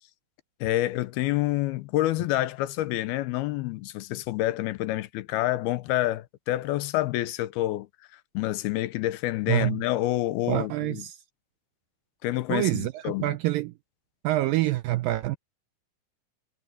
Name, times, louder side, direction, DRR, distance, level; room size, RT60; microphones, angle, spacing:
voice 1, 0.6-7.9 8.3-11.0 12.2-13.4, left 16 dB, 85° left, 2.6 m, -28 dB
voice 2, 9.5-9.8 10.5-11.2 12.5-13.7 14.2-15.4, right 17 dB, 80° right, 2.0 m, -26 dB
omnidirectional pair, 4.6 m